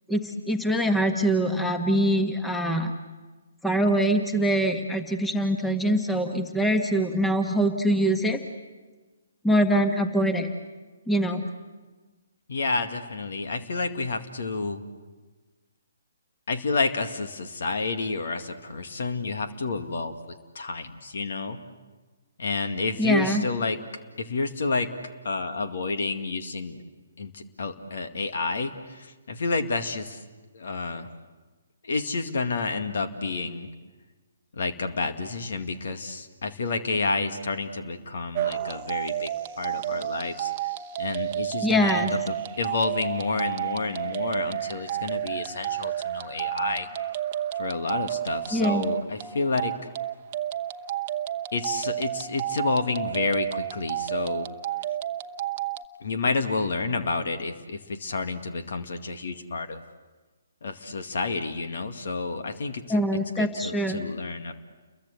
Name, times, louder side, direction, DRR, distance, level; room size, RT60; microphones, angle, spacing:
voice 1, 0.1-2.9 3.6-8.4 9.4-10.5 11.1-11.4 23.0-23.4 41.6-42.1 48.5-48.8 62.9-64.0, right 1 dB, 5° left, 6 dB, 1.6 m, -24 dB
voice 2, 12.5-14.8 16.5-21.6 22.4-23.8 24.2-24.9 25.2-26.8 27.2-30.2 30.5-31.1 31.8-33.7 34.5-39.3 39.6-46.9 47.6-49.7 51.5-54.5 56.0-59.8 60.6-63.0 63.4-64.5, left 3 dB, 65° left, 7 dB, 2.1 m, -30 dB
sound 1, 38.3-55.9, right 12 dB, 35° right, 1.0 m, -31 dB
30.0 x 22.5 x 8.2 m, 1.3 s
figure-of-eight pair, 135°, 0 cm